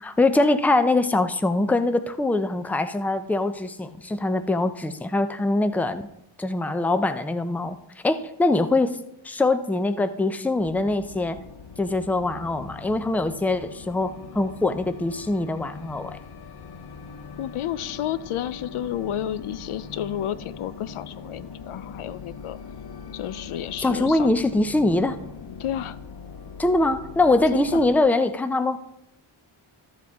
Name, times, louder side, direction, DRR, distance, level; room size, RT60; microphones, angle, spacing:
voice 1, 0.0-6.1 6.4-7.8 8.0-9.0 9.2-11.4 11.8-16.2 23.8-25.2 26.6-28.8, left 2 dB, 5° left, 10 dB, 0.4 m, -23 dB
sound 1, 10.6-28.0, left 5 dB, 50° left, 0.8 m, -41 dB
voice 2, 17.4-22.6 23.1-24.3 25.6-26.0 27.5-27.8, left 11 dB, 85° left, 15 dB, 0.6 m, -31 dB
13.0 x 7.5 x 3.5 m, 0.81 s
wide cardioid pair, 110°, 48 cm